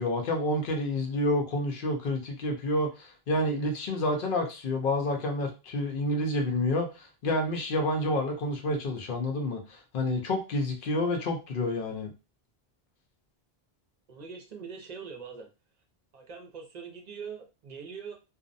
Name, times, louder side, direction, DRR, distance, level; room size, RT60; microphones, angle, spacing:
voice 1, 0.0-12.1, left 1 dB, 60° left, 3 dB, 0.7 m, -29 dB
voice 2, 14.1-15.5 16.1-18.1, right 6 dB, 50° right, 2 dB, 0.6 m, -42 dB
2.5 x 2.0 x 2.5 m, 0.29 s
omnidirectional pair, 1.0 m